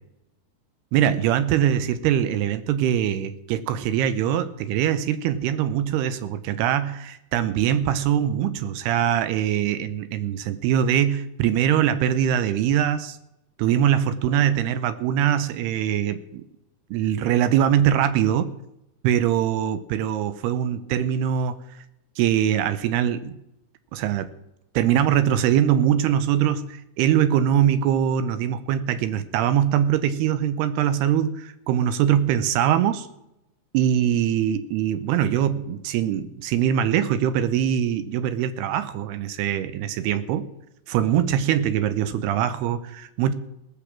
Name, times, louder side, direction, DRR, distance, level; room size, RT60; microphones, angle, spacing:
voice 1, 0.9-13.2 13.6-16.4 16.9-18.5 19.0-21.6 22.2-23.4 23.9-24.3 24.8-33.1 33.7-40.5 40.9-43.3, right 10 dB, 80° right, 12 dB, 2.6 m, -22 dB
18.0 x 6.8 x 7.3 m, 0.86 s
omnidirectional pair, 4.9 m